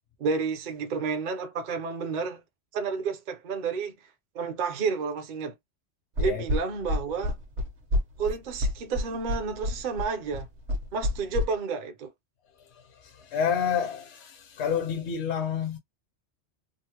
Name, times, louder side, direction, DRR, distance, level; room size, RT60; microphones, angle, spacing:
voice 1, 0.2-2.4 2.7-3.9 4.3-5.5 6.2-7.4 8.2-10.5 10.9-12.1, right 5 dB, 55° right, 0.6 m, -30 dB
sound 1, 6.2-11.4, left 1 dB, 70° right, 1.2 m, -28 dB
voice 2, 12.6-15.8, left 7 dB, 70° left, 0.9 m, -29 dB
3.7 x 2.0 x 2.8 m
omnidirectional pair, 1.2 m